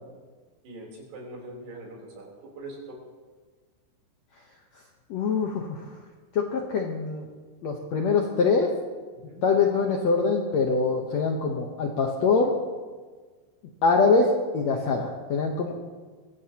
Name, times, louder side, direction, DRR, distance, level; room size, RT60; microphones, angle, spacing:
voice 1, 0.6-3.0 9.1-9.4 15.7-15.8, right 2 dB, 85° right, -2 dB, 5.8 m, -42 dB
voice 2, 5.1-5.8 6.3-7.2 7.6-8.7 9.4-12.5 13.8-15.7, left 4 dB, 75° left, 1 dB, 1.6 m, -24 dB
23.5 x 16.5 x 2.9 m, 1.4 s
omnidirectional pair, 4.6 m